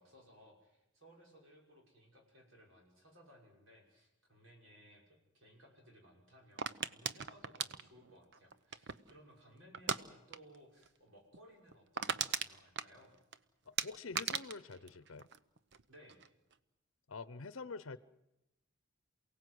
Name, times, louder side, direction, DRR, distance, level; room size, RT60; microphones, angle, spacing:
voice 1, 0.0-13.2 15.9-16.2, equal, 75° right, 0 dB, 6.0 m, -61 dB
sound 1, 6.6-9.1 9.7-10.0 10.3-10.6 10.8-10.9 11.3-11.4 11.7-13.4 13.8-15.8 16.1-16.5, right 7 dB, 60° right, 0.8 m, -38 dB
voice 2, 13.7-15.3 17.1-18.0, left 4 dB, 75° left, 15 dB, 0.8 m, -46 dB
28.0 x 17.5 x 7.9 m, 0.91 s
head